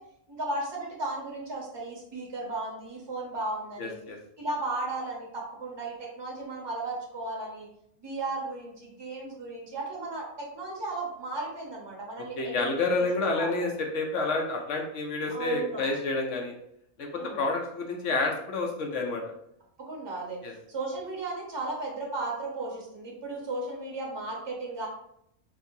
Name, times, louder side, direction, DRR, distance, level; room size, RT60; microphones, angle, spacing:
voice 1, 0.3-4.0 4.4-7.7 8.0-12.6 13.0-13.5 15.3-16.0 17.0-17.4 19.8-20.4 20.7-24.9, right 2 dB, 20° right, -2 dB, 0.8 m, -35 dB
voice 2, 3.8-4.2 12.4-16.5 17.0-19.2 20.4-20.5, left 3 dB, 65° left, 1 dB, 0.9 m, -29 dB
4.5 x 2.7 x 2.7 m, 0.74 s
omnidirectional pair, 1.5 m